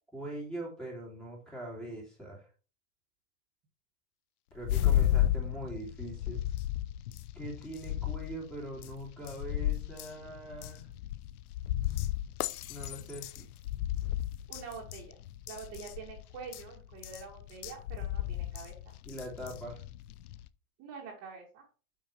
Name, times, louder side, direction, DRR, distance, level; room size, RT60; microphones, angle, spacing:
voice 1, 0.1-2.4 4.5-6.4 7.3-10.9 12.7-13.5 19.0-19.8, right 1 dB, ahead, -3 dB, 2.9 m, -42 dB
sound 1, 4.6-20.5, left 12 dB, 85° left, 0.7 m, -34 dB
voice 2, 14.5-15.1 15.5-18.7 20.8-21.6, right 5 dB, 30° right, -3 dB, 2.3 m, -46 dB
8.6 x 6.1 x 3.3 m, 0.36 s
supercardioid pair, 155°, 43 cm